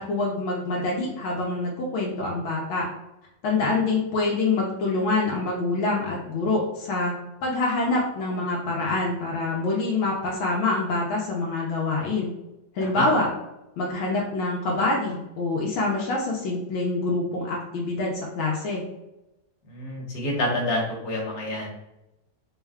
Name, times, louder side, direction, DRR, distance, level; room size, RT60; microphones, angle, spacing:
voice 1, 0.0-2.8 3.4-7.1 7.4-12.3 12.7-13.3 13.8-18.8, left 3 dB, 75° left, -2 dB, 1.5 m, -26 dB
voice 2, 19.7-21.7, left 1 dB, 50° left, -3 dB, 1.5 m, -28 dB
4.4 x 2.2 x 3.5 m, 0.92 s
omnidirectional pair, 2.3 m